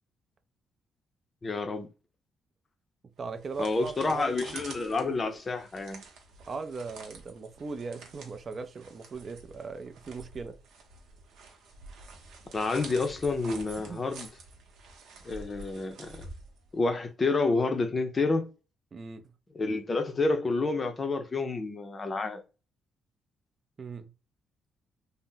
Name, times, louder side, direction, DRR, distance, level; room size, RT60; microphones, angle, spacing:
voice 1, 1.4-1.9 3.6-6.0 12.5-14.3 15.2-16.3 16.7-18.5 19.5-22.4, left 3 dB, 30° left, 0.5 m, -29 dB
voice 2, 3.2-4.6 6.5-10.6 13.8-14.0 18.9-19.2 23.8-24.1, right 4 dB, 40° right, 0.4 m, -39 dB
sound 1, 3.2-17.0, right 3 dB, 80° right, 0.8 m, -48 dB
2.6 x 2.0 x 3.6 m
cardioid pair, 90°, 0 cm